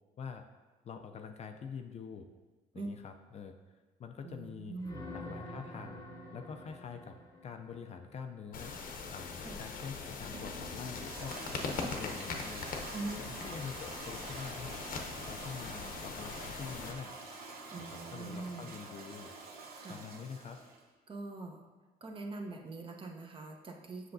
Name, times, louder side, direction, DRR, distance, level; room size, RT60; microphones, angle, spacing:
voice 1, 0.8-2.3 2.7-3.6 4.0-4.8 5.1-6.0 6.3-7.2 7.4-8.7 9.1-12.8 13.4-14.8 15.3-17.1 17.8-19.3 19.9-20.6, left 6 dB, 40° left, 5 dB, 0.4 m, -45 dB
voice 2, 4.2-5.0 9.4-9.6 12.9-13.2 17.7-18.7 19.8-20.0 21.1-21.6 22.0-24.1, right 3 dB, 30° right, 2 dB, 0.8 m, -43 dB
sound 1, 4.8-8.6 13.1-13.3, left 1 dB, 20° left, 0.9 m, -48 dB
sound 2, 8.5-16.9, left 4 dB, 55° left, 0.8 m, -41 dB
Toilet flush, 9.8-20.8, right 3 dB, 60° right, 0.9 m, -47 dB
7.5 x 5.7 x 2.6 m, 1.3 s
cardioid pair, 110°, 17 cm